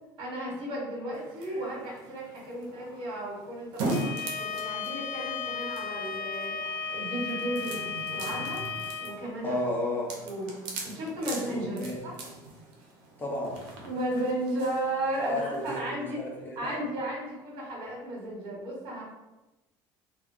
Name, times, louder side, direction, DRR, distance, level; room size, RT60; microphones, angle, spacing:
voice 1, 0.2-6.6 6.9-8.6 9.0-9.6 10.2-10.6 10.8-12.1 13.9-16.2 16.6-19.0, right 1 dB, 65° right, -3 dB, 1.1 m, -34 dB
sound 1, 1.1-15.8, right 2 dB, 85° right, 0.6 m, -41 dB
Bowed string instrument, 3.8-9.2, left 5 dB, 85° left, 0.4 m, -35 dB
voice 2, 9.4-10.2 11.2-12.0 13.2-13.6 15.2-16.8, left 1 dB, 20° left, -3 dB, 0.7 m, -33 dB
2.2 x 2.2 x 3.7 m, 1.0 s
cardioid pair, 125°, 9 cm